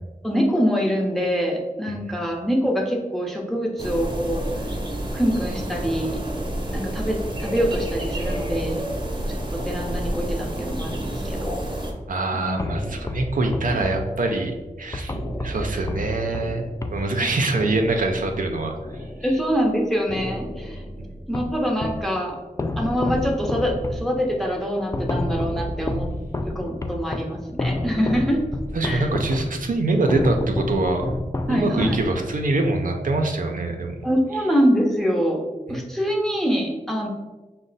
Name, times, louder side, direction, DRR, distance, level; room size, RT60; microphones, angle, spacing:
voice 1, 0.2-4.5 5.1-6.2 6.7-8.8 9.3-11.6 12.3-12.7 13.7-13.8 15.6-15.8 17.2-17.3 19.2-20.8 21.3-22.4 22.8-26.1 26.4-28.4 28.8-29.1 31.5-31.9 34.0-35.4 35.7-37.1, equal, ahead, 0 dB, 0.8 m, -24 dB
sound 1, 3.8-11.9, right 1 dB, 35° right, 0.8 m, -29 dB
voice 2, 12.1-18.7 21.0-21.1 28.7-31.1 31.5-34.0 35.7-35.8, right 2 dB, 70° right, 3 dB, 0.5 m, -24 dB
sound 2, 12.6-19.7 20.1-22.1 22.6-32.5, left 1 dB, 20° left, 0.4 m, -30 dB
5.0 x 2.1 x 3.9 m, 1.2 s
wide cardioid pair, 55°, 14 cm